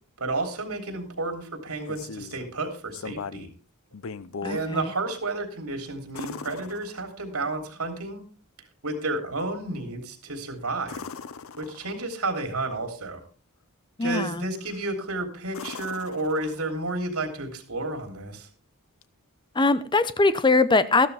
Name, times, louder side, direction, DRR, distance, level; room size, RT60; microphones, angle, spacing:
voice 1, 0.2-3.5 4.4-8.2 8.8-11.0 11.6-13.2 14.0-18.5, right 2 dB, 80° right, 3.3 m, -31 dB
sound 1, 1.6-2.4 2.9-3.6 3.9-4.7 6.1-7.4 10.8-12.1 14.6-15.0 15.5-16.9 19.0-19.1, left 5 dB, 65° left, 0.6 m, -39 dB
voice 2, 4.4-4.9 14.0-14.4 19.5-21.1, left 3 dB, 20° left, 0.7 m, -22 dB
13.5 x 12.5 x 3.5 m
head